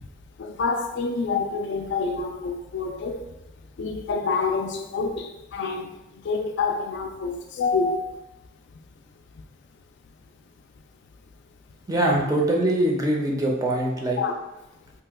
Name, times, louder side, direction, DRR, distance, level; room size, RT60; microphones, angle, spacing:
voice 1, 0.4-3.2 3.8-5.9 6.2-8.2 14.2-14.3, left 4 dB, 60° left, 0.3 m, -27 dB
voice 2, 11.9-14.2, right 1 dB, 20° right, 0.5 m, -23 dB
2.8 x 2.2 x 3.4 m
head